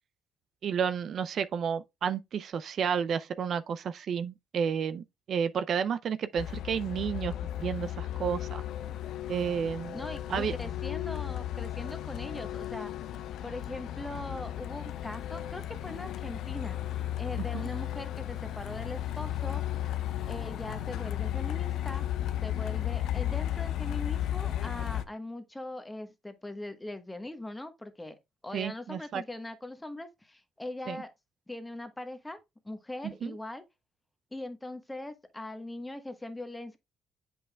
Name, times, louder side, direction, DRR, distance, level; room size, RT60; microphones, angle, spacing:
voice 1, 0.6-8.6 9.3-10.0 10.3-10.5 17.5-17.6 28.5-29.2 30.9-31.0 33.0-33.3, right 7 dB, 55° right, 0.4 m, -31 dB
Truck, 6.4-25.0, left 12 dB, 70° left, 0.7 m, -34 dB
voice 2, 9.9-12.9 13.4-16.8 17.2-19.6 20.3-22.0 22.4-28.2 28.4-31.1 31.5-32.4 32.6-33.6 34.3-36.8, left 1 dB, 10° left, 1.2 m, -41 dB
7.7 x 5.5 x 2.3 m
cardioid pair, 105°, 0 cm